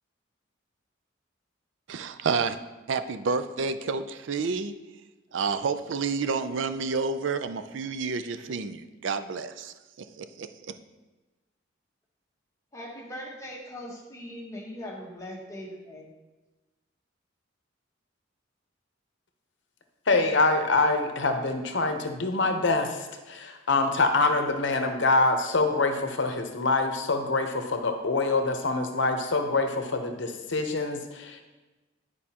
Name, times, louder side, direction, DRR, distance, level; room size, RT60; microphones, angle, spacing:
voice 1, 1.9-2.6 2.9-4.8 5.3-10.5, right 4 dB, 70° right, 11 dB, 0.4 m, -30 dB
voice 2, 12.7-16.1, equal, 15° left, -2 dB, 1.2 m, -40 dB
voice 3, 20.1-31.4, left 3 dB, 65° left, 5 dB, 0.8 m, -25 dB
11.0 x 4.8 x 2.9 m, 1.1 s
head